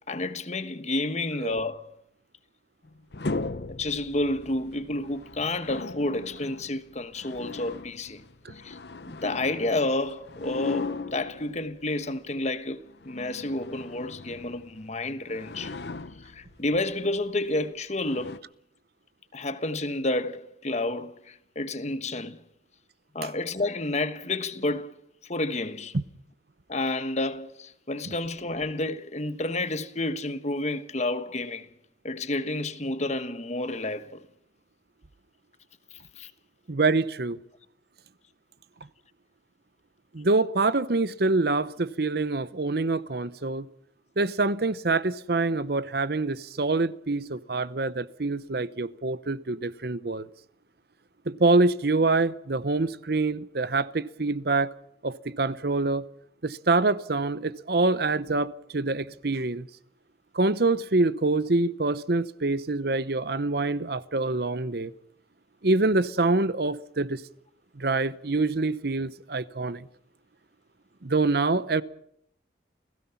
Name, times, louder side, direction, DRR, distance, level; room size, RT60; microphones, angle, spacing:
voice 1, 0.1-1.9 3.7-8.2 8.5-8.8 9.1-15.8 16.2-18.4 19.3-22.4 23.1-24.9 25.2-26.0 26.7-31.7 32.0-34.2 35.9-36.3, left 2 dB, 40° left, 1.2 m, -30 dB
sound 1, 2.8-12.1 12.8-15.0 15.2-16.8 17.5-17.7 18.0-18.4, left 3 dB, 65° left, 0.9 m, -38 dB
voice 2, 36.7-37.4 40.1-43.7 44.2-50.3 51.3-54.7 55.0-56.0 56.4-59.7 60.3-64.9 65.6-67.2 67.8-69.9 71.0-71.8, right 3 dB, 60° right, 0.9 m, -25 dB
29.5 x 16.5 x 5.8 m
head